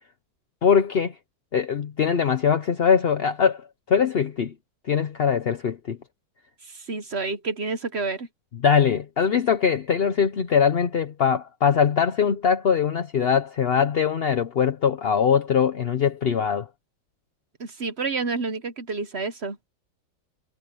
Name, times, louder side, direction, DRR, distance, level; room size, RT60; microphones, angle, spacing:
voice 1, 0.6-1.1 1.5-4.5 4.9-6.0 8.6-16.7, left 7 dB, 50° left, 0.7 m, -22 dB
voice 2, 6.6-8.3 17.6-19.6, right 4 dB, 45° right, 1.0 m, -29 dB
omnidirectional pair, 2.0 m